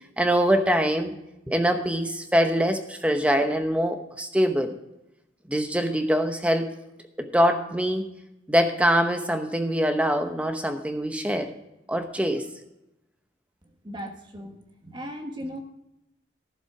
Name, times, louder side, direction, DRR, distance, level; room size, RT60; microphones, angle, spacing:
voice 1, 0.2-1.1 1.5-4.7 5.5-6.7 7.2-8.1 8.5-11.5 11.9-12.4, equal, 5° right, 6 dB, 0.9 m, -23 dB
voice 2, 13.8-15.6, equal, 25° right, 4 dB, 1.3 m, -37 dB
14.0 x 7.3 x 4.8 m, 0.90 s
head